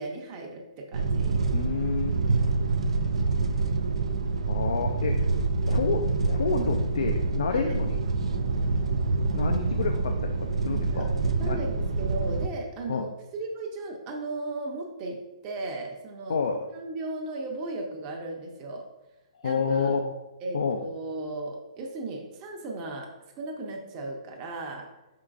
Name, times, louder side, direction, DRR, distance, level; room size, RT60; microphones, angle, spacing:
voice 1, 0.0-1.4 7.6-7.8 10.9-11.1 11.4-15.2 15.4-16.4 16.7-18.8 19.4-19.9 20.4-23.1 23.4-24.9, right 2 dB, 30° right, 0 dB, 0.7 m, -36 dB
sound 1, 0.9-12.5, right 3 dB, 70° right, 0.4 m, -26 dB
voice 2, 1.5-2.2 4.5-5.2 5.7-8.0 9.3-11.1 11.4-11.6 12.9-13.1 16.3-16.6 19.4-20.1 20.5-20.8, left 5 dB, 70° left, 5 dB, 0.4 m, -29 dB
4.4 x 3.8 x 2.4 m, 1.0 s
hypercardioid pair, 130°, 3 cm